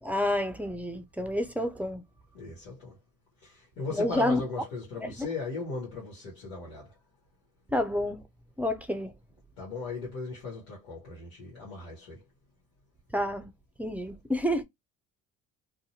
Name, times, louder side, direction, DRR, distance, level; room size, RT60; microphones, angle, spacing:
voice 1, 0.0-2.0 3.9-4.4 5.0-5.3 7.7-8.2 8.6-9.1 13.1-13.5 13.8-14.6, left 1 dB, 5° right, 0.5 m, -29 dB
voice 2, 2.3-2.9 3.4-6.9 9.6-12.2, left 3 dB, 85° left, 1.1 m, -37 dB
2.6 x 2.1 x 2.7 m
hypercardioid pair, 55°, 41 cm